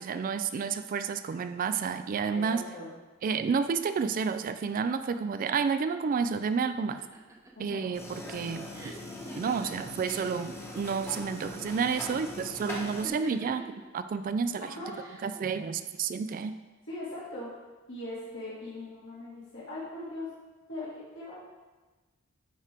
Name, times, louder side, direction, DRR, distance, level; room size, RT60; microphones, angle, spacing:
voice 1, 0.0-2.6 3.2-7.0 7.6-9.0 9.4-14.7 15.2-16.6, right 5 dB, 40° right, 11 dB, 0.3 m, -30 dB
voice 2, 2.3-2.9 7.6-8.0 14.6-14.9 16.9-17.6 17.9-20.3 20.7-21.4, left 2 dB, 60° left, -8 dB, 1.8 m, -40 dB
sound 1, 7.0-10.6 10.9-11.5 12.6-13.9 14.8-15.4, right 2 dB, 15° right, 0.7 m, -46 dB
sound 2, 7.9-13.1, left 1 dB, 10° left, 1.0 m, -41 dB
9.7 x 4.3 x 3.4 m, 1.2 s
head